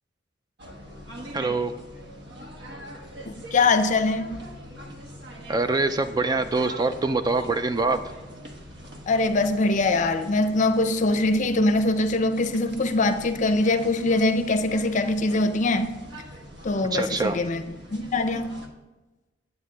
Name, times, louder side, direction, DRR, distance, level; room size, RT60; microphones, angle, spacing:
sound 1, 0.6-18.7, equal, 65° right, 1.1 m, -43 dB
voice 1, 1.3-1.7 5.5-8.0 16.9-17.4, right 3 dB, 20° right, 0.3 m, -24 dB
voice 2, 3.2-4.3 9.1-15.9 16.6-17.6 17.9-18.5, left 2 dB, 40° left, 0.5 m, -23 dB
9.4 x 7.9 x 3.4 m
head